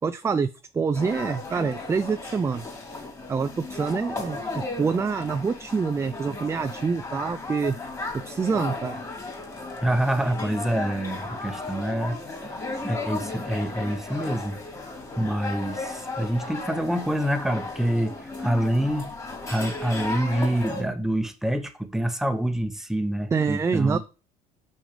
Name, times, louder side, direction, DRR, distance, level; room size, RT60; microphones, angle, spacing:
voice 1, 0.0-0.5 0.7-2.6 3.3-7.8 8.1-9.0 23.3-24.0, right 5 dB, 20° right, 0.5 m, -26 dB
sound 1, 0.9-20.8, left 3 dB, 20° left, 2.9 m, -35 dB
voice 2, 9.8-12.2 12.8-14.6 15.2-19.1 19.5-24.0, right 1 dB, 5° right, 1.1 m, -26 dB
6.0 x 5.6 x 5.1 m
cardioid pair, 120°, 15 cm